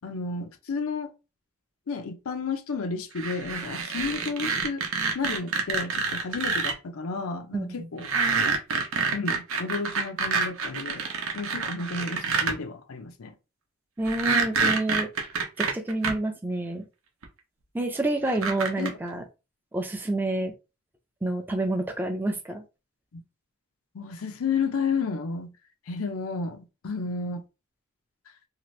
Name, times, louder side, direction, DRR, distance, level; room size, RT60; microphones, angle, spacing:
voice 1, 0.0-1.1 1.9-4.8 5.1-8.1 9.1-13.3 18.8-18.9 23.9-25.5 25.9-27.4, left 4 dB, 90° left, 0.5 m, -32 dB
sound 1, 3.2-6.7 8.0-12.5 14.1-16.1 17.2-17.3 18.3-18.9, right 4 dB, 85° right, 0.7 m, -27 dB
voice 2, 7.5-7.9 14.0-15.1 15.6-16.8 17.7-19.2 19.7-20.5 21.2-22.6, right 2 dB, 10° right, 0.4 m, -28 dB
2.8 x 2.5 x 3.1 m
head